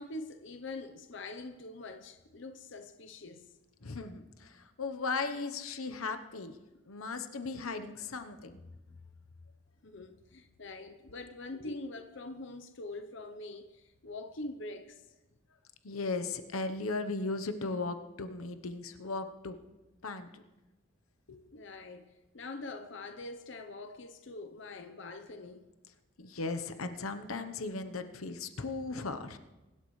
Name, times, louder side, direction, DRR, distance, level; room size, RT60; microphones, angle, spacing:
voice 1, 0.0-3.5 8.9-9.0 9.8-15.0 21.5-25.7, left 2 dB, 60° left, 0.8 m, -44 dB
voice 2, 3.8-6.6 6.9-8.6 11.6-11.7 15.8-19.6 20.0-20.3 21.3-21.4 26.2-29.4, left 3 dB, 90° left, 1.0 m, -37 dB
24.0 x 12.0 x 3.2 m
head